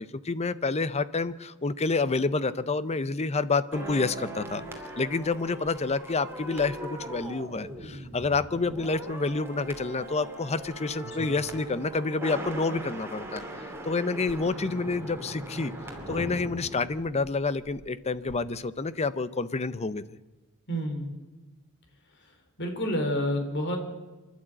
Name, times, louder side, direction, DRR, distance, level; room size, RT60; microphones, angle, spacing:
voice 1, 0.0-4.6 5.0-13.4 13.9-15.7 16.1-20.0, left 3 dB, 30° left, 15 dB, 0.7 m, -28 dB
sound 1, 3.7-17.9 18.1-18.3, right 1 dB, 10° right, 2.8 m, -40 dB
voice 2, 20.7-21.1 22.1-23.9, equal, 55° left, 5 dB, 3.5 m, -30 dB
26.0 x 11.5 x 8.8 m, 1.2 s
head